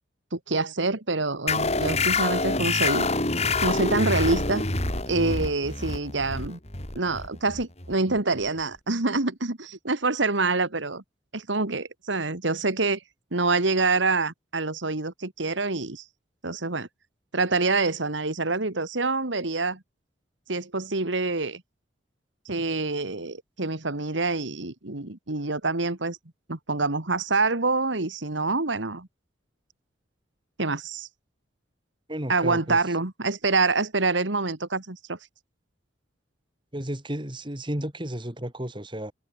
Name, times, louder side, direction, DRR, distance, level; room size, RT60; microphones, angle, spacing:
voice 1, 0.3-3.1 3.6-4.7 5.1-6.6 7.0-11.0 11.3-13.0 13.3-16.0 16.4-16.9 17.3-19.8 20.5-21.6 22.5-26.2 26.5-29.1 30.6-31.1 32.3-35.2, right 3 dB, 80° right, 2.1 m, -26 dB
sound 1, 1.5-8.6, left 3 dB, 35° left, 5.0 m, -27 dB
voice 2, 32.1-32.8 36.7-39.1, right 1 dB, 25° right, 3.5 m, -33 dB
head